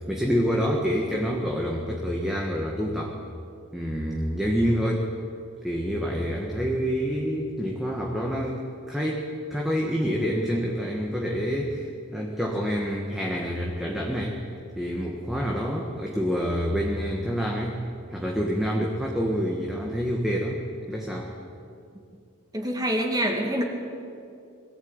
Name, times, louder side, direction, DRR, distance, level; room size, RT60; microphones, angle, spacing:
voice 1, 0.1-3.1 3.7-5.1 5.6-14.4 14.8-17.8 18.1-21.3, equal, ahead, -2 dB, 1.6 m, -27 dB
voice 2, 22.5-23.6, equal, 20° right, 2 dB, 2.3 m, -25 dB
22.0 x 14.5 x 8.9 m, 2.5 s
head